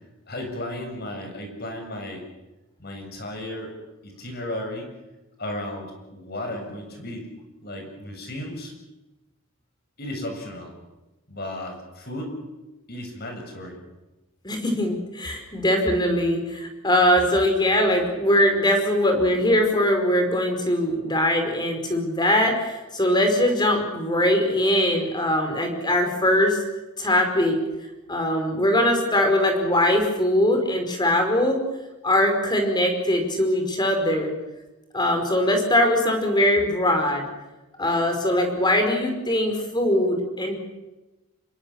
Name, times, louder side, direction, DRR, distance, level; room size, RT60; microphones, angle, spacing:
voice 1, 0.3-2.3 2.8-3.7 4.0-4.9 5.4-7.3 7.6-8.7 10.0-10.7 11.3-12.3 12.9-13.8, left 1 dB, 45° left, 3 dB, 7.5 m, -34 dB
voice 2, 14.4-26.6 27.0-27.6 28.1-31.6 32.0-34.3 34.9-37.2 37.8-40.5, left 1 dB, 20° left, 4 dB, 5.2 m, -21 dB
27.5 x 22.5 x 7.4 m, 1.1 s
head